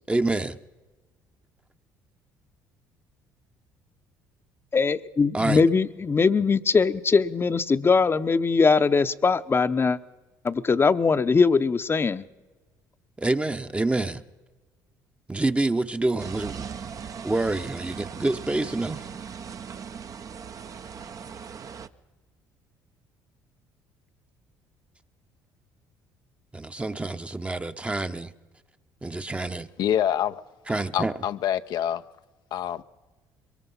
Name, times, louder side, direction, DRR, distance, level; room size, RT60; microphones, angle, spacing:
voice 1, 0.1-0.6 5.3-5.6 13.2-14.2 15.3-16.7 17.2-19.1 26.5-28.3 29.0-29.7 30.7-31.1, right 2 dB, 15° right, 0.9 m, -27 dB
voice 2, 4.7-10.0 10.4-12.2, left 4 dB, 30° left, 0.8 m, -21 dB
sound 1, 16.2-21.9, right 7 dB, 45° right, 0.8 m, -39 dB
voice 3, 29.8-30.4 30.7-32.0 32.5-32.8, left 10 dB, 65° left, 0.6 m, -26 dB
22.5 x 20.5 x 5.6 m
supercardioid pair, 75°, 8 cm